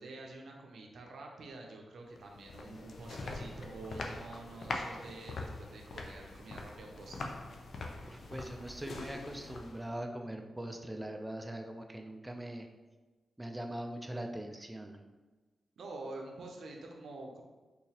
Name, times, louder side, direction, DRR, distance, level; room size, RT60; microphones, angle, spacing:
voice 1, 0.0-7.3 15.8-17.4, right 2 dB, 80° right, 1 dB, 0.5 m, -47 dB
sound 1, 2.2-10.0, left 2 dB, 70° left, 0.4 m, -43 dB
voice 2, 8.1-12.7 13.4-15.0, right 1 dB, 15° right, 3 dB, 0.4 m, -41 dB
3.8 x 2.8 x 2.8 m, 1.2 s
cardioid pair, 55°, 0 cm